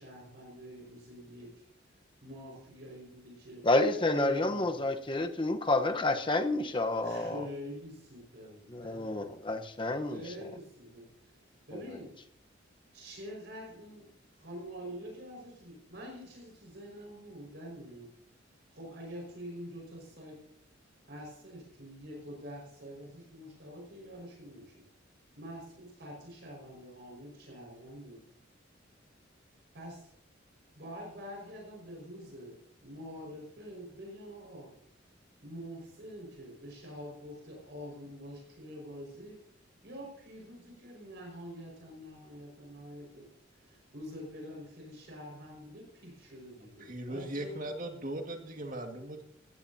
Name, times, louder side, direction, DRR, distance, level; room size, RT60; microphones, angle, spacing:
voice 1, 0.0-1.5 2.2-3.6 4.1-4.9 7.0-9.3 10.0-12.1 12.9-14.1 14.3-18.0 18.7-20.4 21.1-24.7 25.4-28.2 29.7-30.1 30.7-32.6 32.8-34.7 35.4-39.4 39.8-43.2 43.6-47.5, equal, 60° right, -1 dB, 5.5 m, -46 dB
voice 2, 3.6-7.5 8.7-10.5, left 2 dB, 25° left, 7 dB, 1.1 m, -29 dB
voice 3, 46.8-49.2, right 1 dB, 45° right, 4 dB, 2.1 m, -39 dB
19.5 x 16.0 x 2.8 m, 0.71 s
head